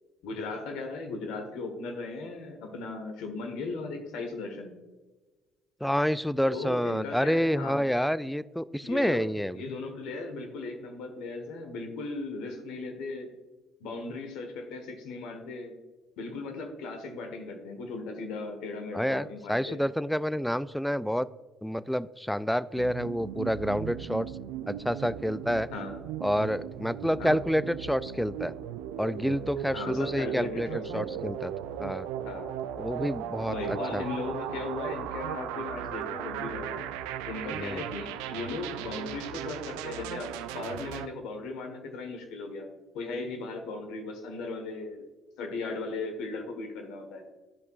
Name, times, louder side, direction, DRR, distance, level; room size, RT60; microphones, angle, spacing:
voice 1, 0.2-4.7 6.5-7.9 8.8-9.3 9.5-13.3 13.8-15.7 16.2-19.8 25.7-26.1 27.2-27.5 29.7-31.3 32.2-32.6 33.5-36.8 37.2-42.7 42.9-45.0 45.4-47.2, left 3 dB, 70° left, 5 dB, 1.4 m, -37 dB
voice 2, 5.8-9.6 18.9-21.3 21.6-24.3 24.7-25.7 26.2-28.5 29.0-30.7 30.9-31.5 31.8-32.1 32.8-33.5 33.9-34.0 37.5-37.8, equal, ahead, 17 dB, 0.3 m, -28 dB
sound 1, 22.8-41.1, right 10 dB, 75° right, 0.4 m, -37 dB
12.0 x 5.3 x 2.5 m, 1.2 s
hypercardioid pair, 55°, 0 cm